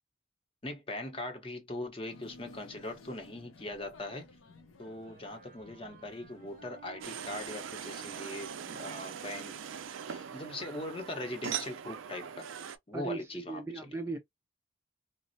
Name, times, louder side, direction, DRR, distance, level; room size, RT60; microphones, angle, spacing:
voice 1, 0.6-4.3 4.8-9.6 10.1-12.5 12.9-14.0, left 1 dB, 30° left, 0.7 m, -41 dB
sound 1, 2.1-7.5, left 3 dB, 85° left, 0.7 m, -56 dB
Wind instrument woodwind instrument, 4.8-10.1, right 6 dB, 45° right, 0.7 m, -57 dB
sound 2, 7.0-12.8, right 8 dB, 85° right, 0.4 m, -41 dB
voice 2, 12.9-14.2, right 3 dB, 15° right, 0.4 m, -38 dB
4.1 x 2.0 x 2.6 m
head